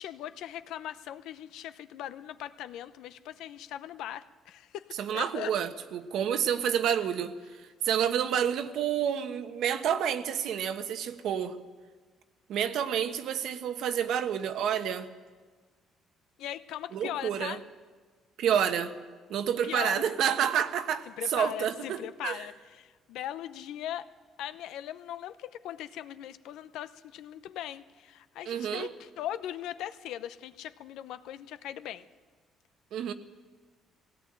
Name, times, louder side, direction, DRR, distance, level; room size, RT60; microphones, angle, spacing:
voice 1, 0.0-4.9 5.1-5.5 16.4-17.6 19.6-20.1 21.1-24.1 24.4-32.0, left 11 dB, 80° left, 0.8 m, -39 dB
voice 2, 5.0-7.3 7.8-11.6 12.5-15.1 16.9-17.6 18.4-18.9 19.3-21.0 21.3-22.4 28.5-28.9 32.9-33.1, right 9 dB, 65° right, 1.2 m, -29 dB
18.5 x 17.5 x 8.8 m
cardioid pair, 140°, 0 cm